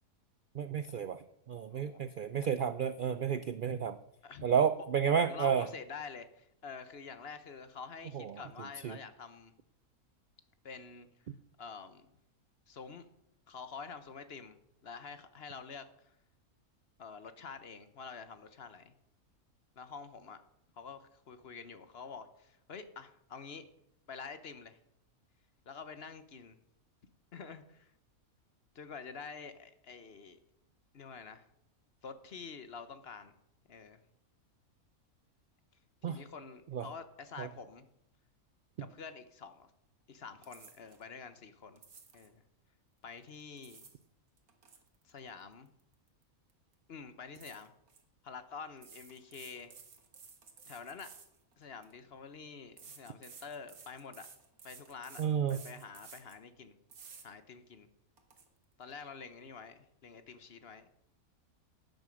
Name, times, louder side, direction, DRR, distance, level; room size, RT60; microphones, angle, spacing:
voice 1, 0.5-4.0 4.4-5.7 8.1-8.4 8.8-9.0 36.0-36.2 36.7-36.9 37.4-37.5 55.2-55.6, right 7 dB, 75° right, 12 dB, 0.4 m, -31 dB
voice 2, 5.0-9.5 10.6-11.1 11.6-12.1 12.7-13.1 13.5-14.6 14.8-16.1 17.0-18.9 19.8-20.4 20.8-23.6 24.1-24.8 25.7-26.6 27.3-27.9 28.7-30.4 30.9-31.5 32.0-33.3 33.7-34.0 36.1-37.9 38.8-39.7 40.1-41.8 42.1-42.4 43.0-43.9 45.0-45.7 46.9-47.7 48.2-49.7 50.7-51.1 51.6-54.3 54.6-55.2 55.5-56.8 57.2-57.9 58.8-60.9, left 5 dB, 50° left, 11 dB, 1.0 m, -47 dB
sound 1, 40.4-41.0 41.8-42.3 43.3-44.0 44.4-46.2 46.5-46.7 47.4-48.0 48.8-51.9 52.8-56.4 56.9-57.3 57.7-57.8 58.2-58.5, right 5 dB, 90° right, 2.0 m, -54 dB
11.0 x 9.2 x 6.3 m, 0.78 s
omnidirectional pair, 1.5 m